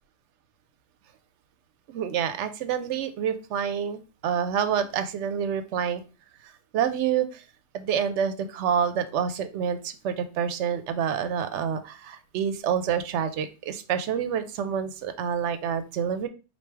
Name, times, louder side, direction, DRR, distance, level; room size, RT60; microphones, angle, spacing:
voice 1, 1.9-6.0 6.7-7.4 7.7-16.3, right 8 dB, 75° right, 10 dB, 0.9 m, -27 dB
3.3 x 2.6 x 4.4 m, 0.32 s
omnidirectional pair, 1.2 m